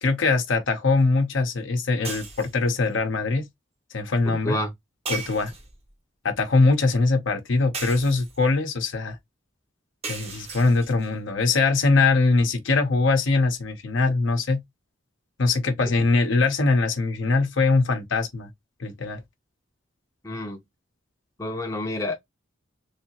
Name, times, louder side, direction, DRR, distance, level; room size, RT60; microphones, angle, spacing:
voice 1, 0.0-3.5 3.9-4.6 5.1-5.5 6.2-9.2 10.1-14.6 15.4-18.5 18.8-19.2, left 3 dB, 70° left, 0.8 m, -22 dB
sound 1, 2.0-2.7 5.1-5.9 7.7-8.5 10.0-11.1, right 4 dB, 30° right, 0.7 m, -36 dB
voice 2, 4.3-4.7 15.8-15.9 20.2-20.6 21.4-22.2, left 1 dB, 15° left, 0.6 m, -29 dB
3.3 x 2.8 x 2.9 m
head